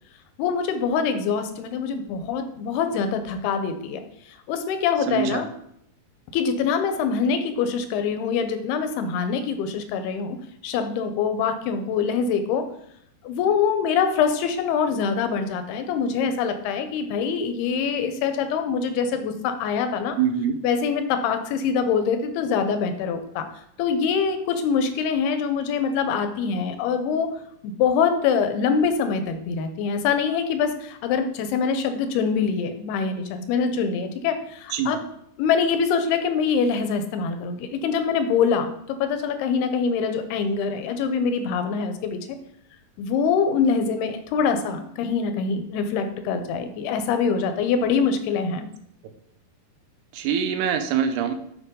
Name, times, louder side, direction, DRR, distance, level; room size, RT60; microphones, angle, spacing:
voice 1, 0.4-4.0 4.3-5.5 6.3-10.4 10.6-12.7 13.2-20.2 20.6-23.5 23.8-27.3 27.6-35.0 35.4-42.2 43.0-48.7, left 6 dB, 85° left, 8 dB, 2.8 m, -24 dB
voice 2, 5.1-5.4 20.2-20.6 34.7-35.0 50.1-51.3, right 8 dB, 85° right, 8 dB, 2.8 m, -24 dB
8.0 x 6.4 x 3.8 m, 0.72 s
omnidirectional pair, 4.5 m